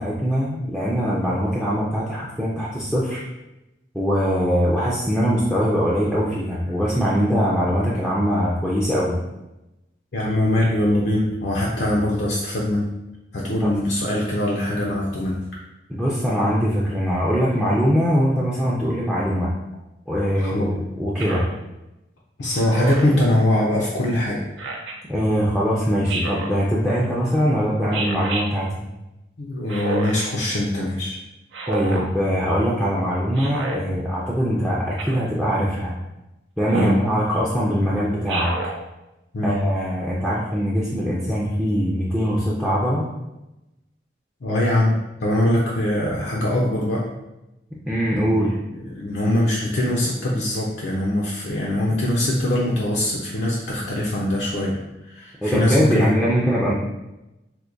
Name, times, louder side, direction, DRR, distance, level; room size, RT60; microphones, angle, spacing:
voice 1, 0.0-3.2 3.9-9.2 13.6-13.7 15.9-19.5 20.1-21.5 25.1-28.9 31.7-35.9 36.6-38.5 39.4-43.0 47.9-48.5 55.4-56.8, equal, 5° right, -6 dB, 0.4 m, -22 dB
voice 2, 10.1-12.9 13.3-15.4 20.4-20.7 22.4-24.4 29.4-31.2 36.7-37.0 39.3-39.6 44.4-45.0 45.2-47.0 48.3-54.7 55.1-56.1, left 1 dB, 75° left, -4 dB, 0.5 m, -22 dB
Speech synthesizer, 21.2-21.6 22.7-23.2 24.6-24.9 26.1-26.6 27.9-28.4 29.7-30.3 31.5-32.1 33.4-33.8 35.0-35.3 36.7-37.0 38.3-38.8, right 3 dB, 80° right, 0.5 m, -29 dB
4.4 x 2.2 x 2.5 m, 0.95 s
head